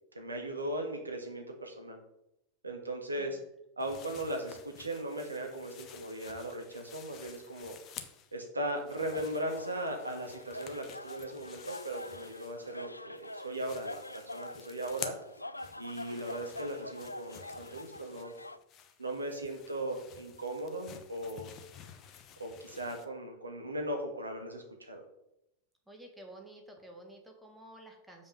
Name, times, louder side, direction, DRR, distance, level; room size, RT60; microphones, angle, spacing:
voice 1, 0.1-2.0 2.6-3.4 3.8-7.8 8.3-15.1 15.8-18.3 19.0-21.5 22.4-25.0, right 1 dB, 80° right, 3 dB, 1.5 m, -38 dB
sound 1, 3.8-8.4 8.7-12.9 13.2-23.1, left 8 dB, 35° left, 0.9 m, -51 dB
sound 2, 9.1-18.6, left 1 dB, 85° left, 0.3 m, -46 dB
voice 2, 25.9-28.3, right 1 dB, 5° right, 2 dB, 1.8 m, -51 dB
7.2 x 5.5 x 5.4 m, 0.83 s
figure-of-eight pair, 90°, 0 cm